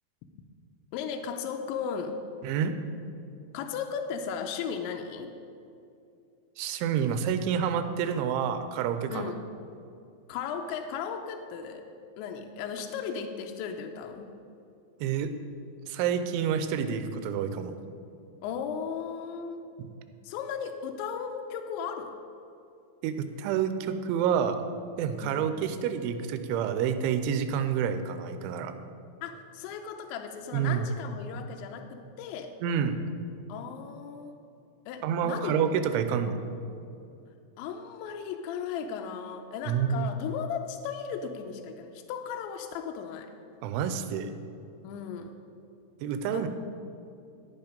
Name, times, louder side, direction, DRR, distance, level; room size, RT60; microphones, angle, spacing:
voice 1, 0.9-2.2 3.5-5.3 9.1-9.4 10.3-11.8 12.2-14.4 18.4-19.6 20.2-22.2 25.2-25.4 29.2-32.6 33.5-34.4 34.9-35.6 37.6-43.4 44.8-45.3 46.3-46.5, left 7 dB, 85° left, 4 dB, 2.8 m, -36 dB
voice 2, 2.4-2.8 6.6-9.3 15.0-15.4 15.9-17.7 19.8-19.9 23.0-24.6 25.0-28.7 30.5-30.9 32.6-33.0 35.0-36.5 39.7-40.1 43.6-44.3 46.0-46.5, right 8 dB, 90° right, 9 dB, 3.1 m, -28 dB
11.0 x 8.1 x 5.2 m, 2.6 s
omnidirectional pair, 5.3 m